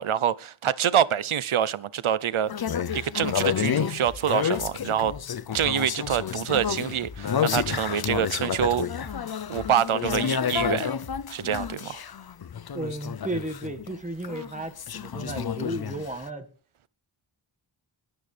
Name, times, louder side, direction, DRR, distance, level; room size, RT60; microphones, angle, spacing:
voice 1, 0.0-5.1 5.5-8.9 9.5-10.9 11.3-12.0, right 9 dB, 90° right, 0.7 m, -26 dB
sound 1, 2.5-14.0 14.2-16.3, left 8 dB, 50° left, 0.6 m, -30 dB
sound 2, 4.0-11.9, left 5 dB, 85° left, 1.5 m, -43 dB
voice 2, 12.7-16.5, right 1 dB, 15° right, 1.7 m, -34 dB
20.5 x 11.0 x 3.3 m
wide cardioid pair, 65°, 48 cm